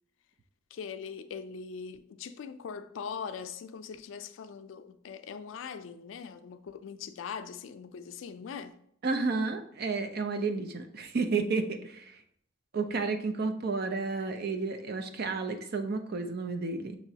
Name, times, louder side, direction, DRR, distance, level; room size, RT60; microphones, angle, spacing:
voice 1, 0.7-8.8, left 6 dB, 85° left, 0.4 m, -41 dB
voice 2, 9.0-12.2 12.7-17.0, right 4 dB, 55° right, 0.5 m, -31 dB
6.1 x 3.0 x 2.7 m
head